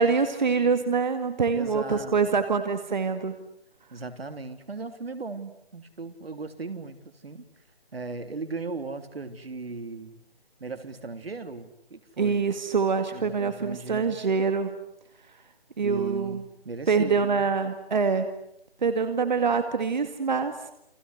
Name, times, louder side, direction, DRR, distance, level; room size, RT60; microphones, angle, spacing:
voice 1, 0.0-3.4 12.2-14.7 15.8-16.4 16.9-18.3 18.8-20.5, right 5 dB, 50° right, 9 dB, 2.1 m, -25 dB
voice 2, 1.6-2.2 3.9-7.4 7.9-10.2 10.6-12.5 13.1-14.2 15.8-17.5, right 3 dB, 75° right, 9 dB, 3.4 m, -37 dB
30.0 x 24.5 x 8.1 m, 0.76 s
hypercardioid pair, 170°, 30 cm